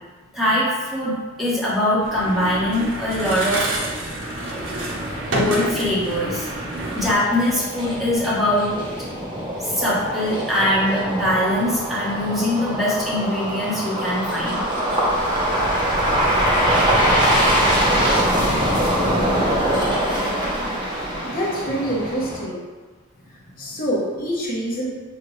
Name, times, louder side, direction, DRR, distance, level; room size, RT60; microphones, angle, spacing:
voice 1, 0.3-3.7 5.3-6.5 6.9-8.7 9.6-14.6 18.0-18.1 23.5-23.6, left 1 dB, ahead, -9 dB, 1.3 m, -22 dB
sound 1, 2.0-7.1, right 1 dB, 70° right, 0.7 m, -28 dB
sound 2, 3.1-22.4, right 1 dB, 25° right, 0.9 m, -23 dB
voice 2, 21.2-22.6 23.6-24.9, equal, 45° left, -5 dB, 1.0 m, -26 dB
5.9 x 2.5 x 3.2 m, 1.3 s
head